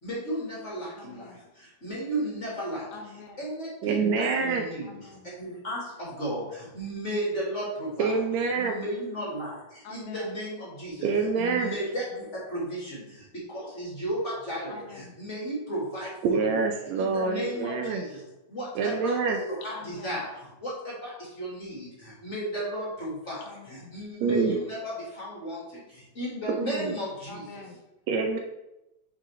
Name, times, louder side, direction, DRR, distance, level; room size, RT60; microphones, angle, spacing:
voice 1, 0.0-2.9 3.4-5.0 5.4-8.1 8.5-11.1 11.3-16.6 17.0-18.2 18.5-27.4, right 1 dB, 30° left, -5 dB, 1.4 m, -34 dB
voice 2, 1.0-1.4 2.9-3.4 4.8-5.3 9.8-10.4 11.4-11.9 14.7-15.2 19.7-20.2 23.5-23.9 27.3-27.8, left 4 dB, 75° left, 4 dB, 1.8 m, -45 dB
voice 3, 3.8-4.7 8.0-8.8 11.0-11.7 16.2-18.0 18.7-19.4 24.2-24.5 26.5-26.9 28.1-28.4, right 4 dB, 75° right, 3 dB, 1.7 m, -26 dB
9.8 x 3.7 x 3.1 m, 0.94 s
omnidirectional pair, 3.4 m